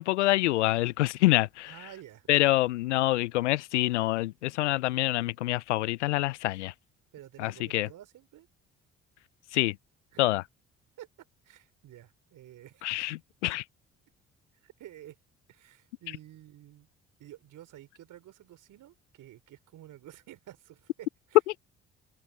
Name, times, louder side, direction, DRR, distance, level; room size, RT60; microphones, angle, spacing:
voice 1, 0.0-1.7 2.3-6.7 7.4-7.9 9.5-9.8 10.2-10.4 12.8-13.6, left 17 dB, 85° left, 0.5 m, -26 dB
voice 2, 1.7-2.3 7.1-8.5 10.1-10.2 11.0-11.1 11.4-12.9 14.6-15.2 15.5-16.9 17.2-21.4, right 13 dB, 65° right, 3.4 m, -50 dB
open air
hypercardioid pair, 45°, 34 cm